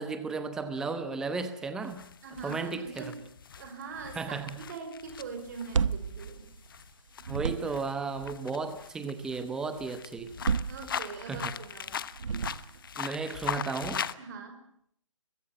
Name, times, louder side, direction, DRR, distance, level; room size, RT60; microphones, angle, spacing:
voice 1, 0.0-2.1 2.4-3.1 4.2-4.6 7.3-10.3 11.3-11.5 13.0-14.1, right 4 dB, 5° right, 10 dB, 1.0 m, -34 dB
sound 1, 1.8-14.1, left 8 dB, 45° left, 1.1 m, -40 dB
voice 2, 2.2-3.2 3.5-6.5 10.7-12.0 14.2-14.6, right 5 dB, 35° right, 6 dB, 5.4 m, -42 dB
sound 2, 5.5-6.9 7.2-8.0 10.2-11.4 12.1-12.9, right 6 dB, 80° right, 1.0 m, -32 dB
22.5 x 22.0 x 8.7 m, 0.69 s
hypercardioid pair, 165°, 16 cm